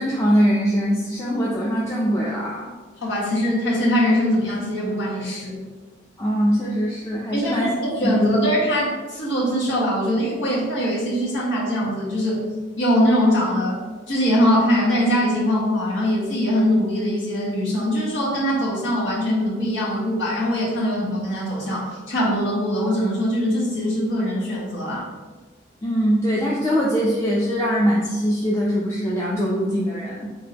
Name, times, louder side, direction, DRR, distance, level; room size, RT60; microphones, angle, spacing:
voice 1, 0.0-2.6 6.2-7.7 8.0-8.3 25.8-30.3, equal, 15° left, -5 dB, 0.4 m, -22 dB
voice 2, 3.0-5.6 7.3-12.5 12.8-25.0, equal, 85° left, -6 dB, 1.3 m, -22 dB
4.0 x 3.7 x 2.8 m, 1.3 s
head